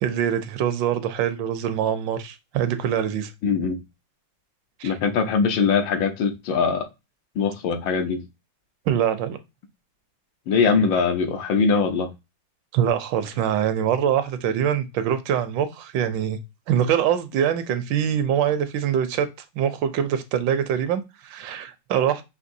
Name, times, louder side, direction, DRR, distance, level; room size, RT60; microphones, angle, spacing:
voice 1, 0.0-3.3 4.8-4.9 8.9-9.4 12.7-16.4 16.7-19.3 19.6-22.2, right 9 dB, 75° right, 1.2 m, -24 dB
voice 2, 3.4-3.8 4.8-6.9 7.3-8.2 10.5-12.1, left 5 dB, 75° left, 1.5 m, -22 dB
5.9 x 2.8 x 2.6 m
omnidirectional pair, 2.1 m